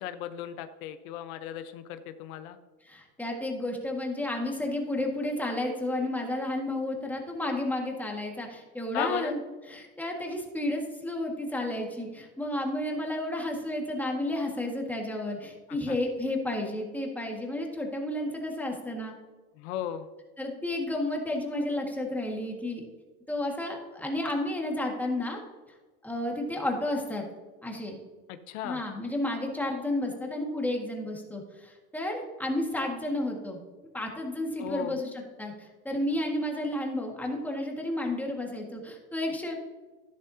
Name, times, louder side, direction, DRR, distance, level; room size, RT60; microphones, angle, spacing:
voice 1, 0.0-2.6 8.9-9.3 15.9-16.0 19.6-20.1 28.3-28.8 34.6-35.0, left 11 dB, 85° left, 10 dB, 0.9 m, -36 dB
voice 2, 2.8-9.4 9.7-19.1 20.4-22.8 23.3-25.4 26.0-27.2 27.6-28.0 28.6-33.6 33.9-35.1 35.4-39.5, left 1 dB, 5° left, 0 dB, 1.7 m, -32 dB
11.5 x 11.0 x 2.8 m, 1.3 s
supercardioid pair, 135°, 42 cm